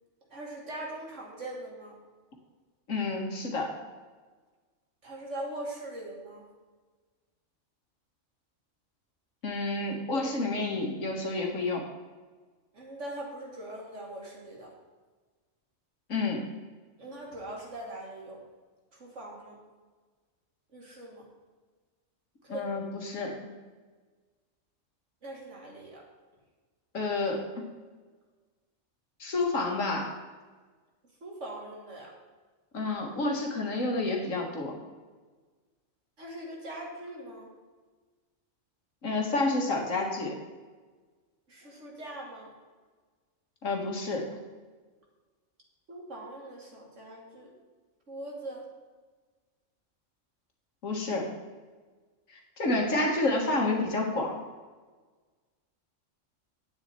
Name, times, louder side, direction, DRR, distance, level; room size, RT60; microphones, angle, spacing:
voice 1, 0.3-2.0 5.0-6.4 12.7-14.7 17.0-18.4 18.9-19.6 20.7-21.3 22.4-22.7 25.2-26.0 31.2-32.1 36.2-37.5 41.5-42.5 45.9-47.5 48.1-48.7, right 1 dB, 65° right, -2 dB, 2.8 m, -41 dB
voice 2, 2.9-3.7 9.4-11.8 16.1-16.5 22.5-23.3 26.9-27.6 29.2-30.2 32.7-34.8 39.0-40.3 43.6-44.2 50.8-51.3 52.6-54.3, left 2 dB, 75° left, 1 dB, 2.2 m, -29 dB
10.5 x 9.1 x 4.4 m, 1.4 s
omnidirectional pair, 1.4 m